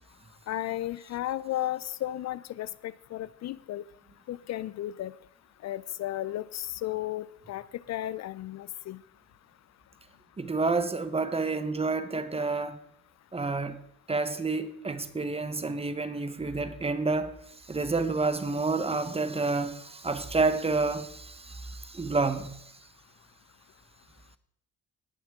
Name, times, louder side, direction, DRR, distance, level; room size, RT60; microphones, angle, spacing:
voice 1, 0.5-3.8 4.3-5.1 5.6-9.0, left 14 dB, 60° left, 0.4 m, -34 dB
voice 2, 10.4-12.8 13.3-13.8 14.1-17.4 17.7-22.6, right 3 dB, 20° right, 0.9 m, -29 dB
18.5 x 7.1 x 3.6 m
cardioid pair, 90°, 30 cm